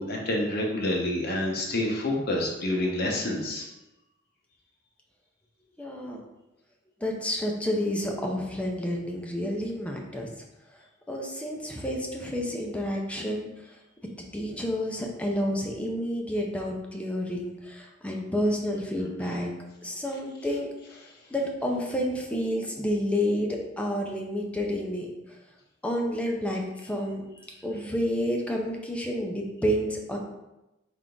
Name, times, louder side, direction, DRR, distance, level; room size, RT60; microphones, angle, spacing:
voice 1, 0.0-3.7, left 1 dB, 55° left, 0 dB, 0.9 m, -28 dB
voice 2, 5.8-6.2 7.0-10.3 11.1-13.5 14.3-19.5 19.8-20.7 21.3-25.1 25.8-27.2 27.6-30.2, equal, 5° left, 0 dB, 0.5 m, -29 dB
3.6 x 3.3 x 3.8 m, 0.96 s
head